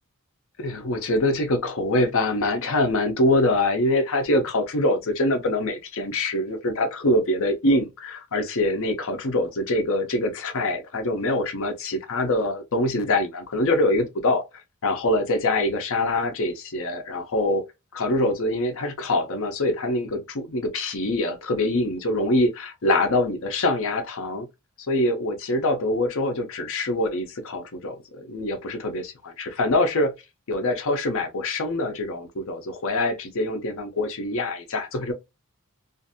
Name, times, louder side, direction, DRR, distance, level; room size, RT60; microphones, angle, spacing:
voice 1, 0.6-17.6 17.9-24.5 24.8-30.1 30.5-35.1, left 1 dB, 65° left, 0.6 m, -24 dB
2.5 x 2.5 x 2.6 m
head